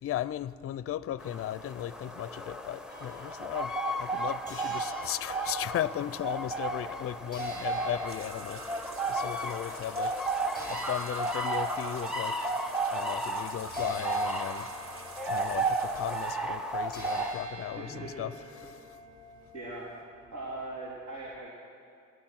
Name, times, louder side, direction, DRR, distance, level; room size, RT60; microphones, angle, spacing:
voice 1, 0.0-10.2 10.7-12.5 12.9-14.7 15.3-18.8, left 11 dB, 50° left, 17 dB, 0.5 m, -36 dB
sound 1, 1.2-17.3, right 2 dB, ahead, 1.0 m, -33 dB
sound 2, 2.9-6.6 7.3-20.0, equal, 30° right, 5.0 m, -48 dB
sound 3, 8.1-16.3, right 2 dB, 45° right, 1.8 m, -49 dB
voice 2, 17.8-18.3 19.5-19.9 20.3-21.5, right 2 dB, 65° right, -5 dB, 3.5 m, -40 dB
18.0 x 12.5 x 5.9 m, 2.5 s
cardioid pair, 100°, 30 cm